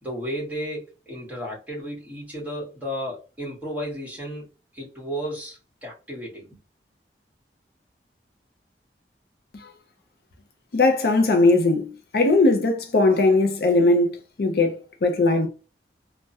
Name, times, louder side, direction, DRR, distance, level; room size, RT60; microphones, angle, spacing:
voice 1, 0.0-4.5 4.7-6.6, equal, 10° right, 1.4 m, -33 dB
voice 2, 10.7-15.5, left 2 dB, 60° left, 0.5 m, -20 dB
3.4 x 2.1 x 2.7 m
head